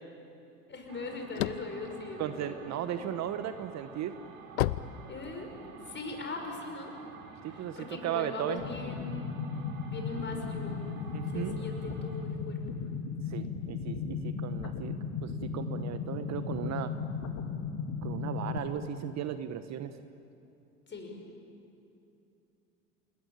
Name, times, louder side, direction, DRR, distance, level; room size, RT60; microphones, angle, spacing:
voice 1, 0.7-3.0 5.1-5.5 5.8-7.0 7.4-9.3 9.9-10.8 11.3-12.6 20.9-21.2, left 3 dB, 25° left, 3 dB, 6.5 m, -40 dB
sound 1, 0.8-3.0 3.5-5.8, left 15 dB, 70° left, 0.8 m, -33 dB
sound 2, 0.9-12.4, right 4 dB, 55° right, 5.0 m, -50 dB
voice 2, 2.2-4.2 7.4-8.6 11.1-11.6 13.3-14.9 15.2-16.9 18.0-19.9, right 10 dB, 40° right, 11 dB, 1.2 m, -36 dB
sound 3, 8.6-18.6, left 5 dB, 45° left, 3.0 m, -36 dB
28.5 x 20.5 x 9.0 m, 2.8 s
hypercardioid pair, 80°, 43 cm